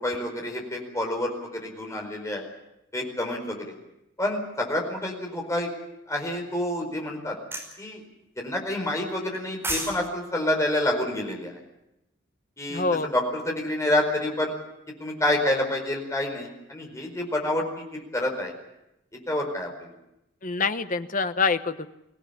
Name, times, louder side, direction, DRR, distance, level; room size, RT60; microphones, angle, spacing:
voice 1, 0.0-2.5 2.9-3.7 4.2-5.7 6.1-7.4 7.8-8.0 8.4-11.6 12.6-12.8 13.1-14.5 15.0-18.5 19.3-19.9, left 1 dB, 15° left, 1 dB, 4.7 m, -28 dB
sound 1, 7.5-7.7 9.3-10.0 10.3-10.4, right 1 dB, 10° right, 5.2 m, -30 dB
voice 2, 12.7-13.1 20.4-21.9, left 4 dB, 40° left, 10 dB, 1.0 m, -26 dB
24.0 x 16.5 x 8.5 m, 0.89 s
head